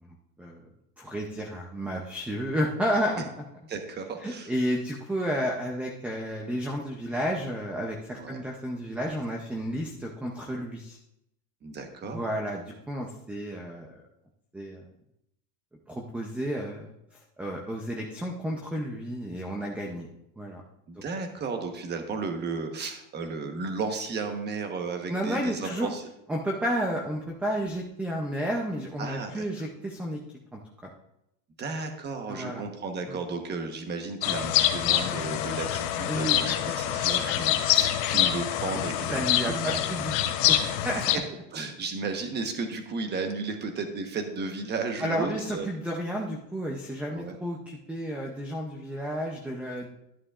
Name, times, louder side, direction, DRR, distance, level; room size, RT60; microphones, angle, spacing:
voice 1, 0.0-0.7 1.0-3.2 4.2-11.0 12.0-13.9 14.5-14.9 15.9-16.9 17.4-20.1 20.4-20.6 25.1-25.9 26.3-30.2 30.5-30.6 32.3-32.6 33.1-33.2 36.1-36.4 39.1-40.2 40.5-41.0 45.0-49.9, equal, 5° right, 0 dB, 0.4 m, -31 dB
voice 2, 3.7-4.5 8.2-8.4 11.6-12.2 20.9-26.0 29.0-29.5 31.6-39.8 41.5-45.7 47.1-47.4, right 4 dB, 25° right, 5 dB, 1.0 m, -34 dB
sound 1, 34.2-41.2, left 12 dB, 55° left, 0.9 m, -26 dB
11.0 x 9.6 x 2.4 m, 0.82 s
supercardioid pair, 150°, 44 cm